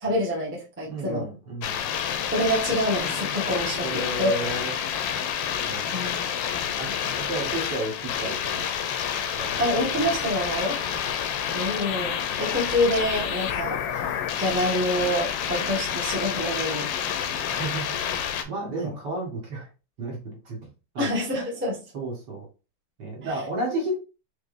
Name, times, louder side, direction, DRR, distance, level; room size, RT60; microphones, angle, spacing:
voice 1, 0.0-1.3 2.3-3.9 4.2-4.3 5.9-6.1 6.5-6.8 9.6-10.8 11.5-16.9 18.7-18.9 21.0-21.8, equal, 10° right, -4 dB, 0.8 m, -27 dB
voice 2, 0.8-1.9 3.8-4.9 5.7-5.9 6.8-8.8 9.4-9.7 10.7-11.0 17.6-18.0 18.4-19.7 20.0-21.4 21.9-22.5 23.0-23.9, right 2 dB, 55° right, -1 dB, 1.8 m, -33 dB
sound 1, 1.6-18.4, left 8 dB, 75° left, 1.2 m, -29 dB
4.3 x 3.3 x 2.5 m, 0.32 s
omnidirectional pair, 2.3 m